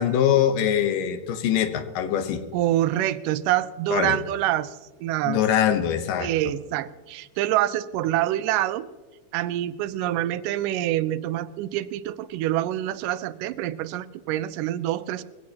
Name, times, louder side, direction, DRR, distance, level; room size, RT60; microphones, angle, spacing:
voice 1, 0.0-2.4 3.9-4.2 5.2-6.3, left 9 dB, 85° left, 8 dB, 2.7 m, -23 dB
voice 2, 2.5-5.4 6.2-8.9 9.3-15.2, right 13 dB, 85° right, 14 dB, 2.1 m, -26 dB
21.5 x 16.0 x 2.9 m, 1.3 s
omnidirectional pair, 3.7 m